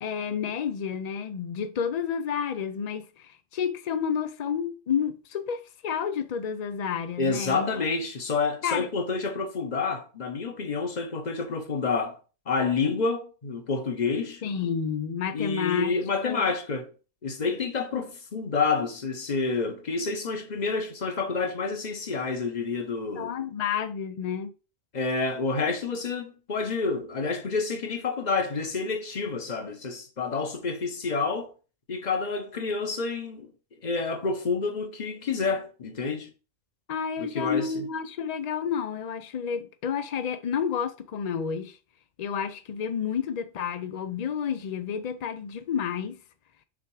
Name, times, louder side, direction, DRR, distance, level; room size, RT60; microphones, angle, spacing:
voice 1, 0.0-7.9 8.6-8.9 14.4-15.9 16.2-16.4 23.1-24.5 36.9-41.8 42.2-46.2, left 7 dB, 75° left, 0.3 m, -30 dB
voice 2, 7.2-12.2 12.5-14.4 15.3-16.9 17.2-23.3 24.9-31.5 31.9-33.5 33.8-36.3 37.2-37.8, left 4 dB, 40° left, 0.9 m, -29 dB
6.0 x 3.5 x 4.7 m
omnidirectional pair, 1.3 m